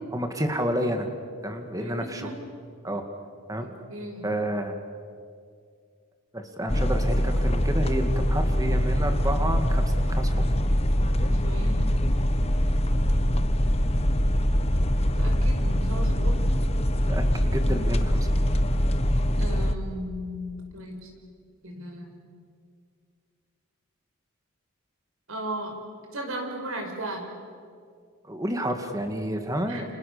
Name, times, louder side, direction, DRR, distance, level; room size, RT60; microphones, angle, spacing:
voice 1, 0.1-1.1 1.4-2.3 2.8-3.0 3.5-3.7 4.2-4.8 6.3-10.5 17.1-17.3 17.5-18.3 28.2-29.8, equal, 15° right, 5 dB, 2.1 m, -30 dB
voice 2, 1.8-2.3 3.6-4.2 11.2-11.9 15.1-16.4 19.4-21.1 21.6-22.1 25.3-25.7 26.1-27.3 29.7-29.9, right 1 dB, 75° right, 3 dB, 5.4 m, -36 dB
sound 1, 6.7-19.7, equal, 30° left, 1.1 m, -23 dB
29.5 x 27.0 x 6.9 m, 2.2 s
head